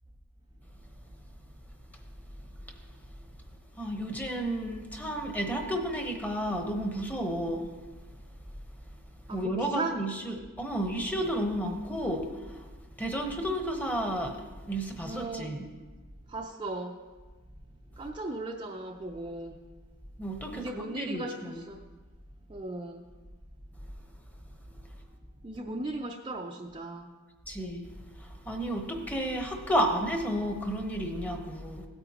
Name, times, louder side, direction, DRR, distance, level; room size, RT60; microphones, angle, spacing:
voice 1, 3.8-7.7 9.3-12.7 13.0-15.6 20.2-21.5 27.5-31.9, equal, 5° left, 3 dB, 1.0 m, -32 dB
voice 2, 9.3-10.0 15.0-15.7 16.3-17.1 18.0-19.6 20.5-21.8 22.5-23.1 25.4-27.1, right 2 dB, 20° right, 1 dB, 0.5 m, -37 dB
16.5 x 8.9 x 2.9 m, 1.3 s
head